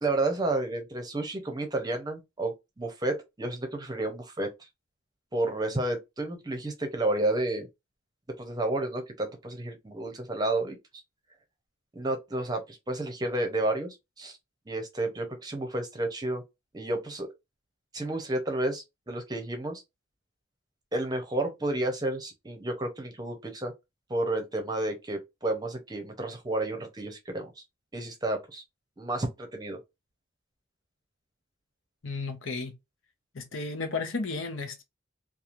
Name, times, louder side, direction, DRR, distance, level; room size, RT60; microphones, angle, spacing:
voice 1, 0.0-4.5 5.3-7.7 8.4-11.0 11.9-14.4 14.7-16.4 16.7-17.3 17.9-19.8 20.9-23.7 24.1-27.5 27.9-28.6 29.0-29.8, right 2 dB, 20° right, 0.6 m, -31 dB
voice 2, 32.0-32.7 33.3-34.8, left 3 dB, 80° left, 0.8 m, -33 dB
3.0 x 2.3 x 2.4 m
head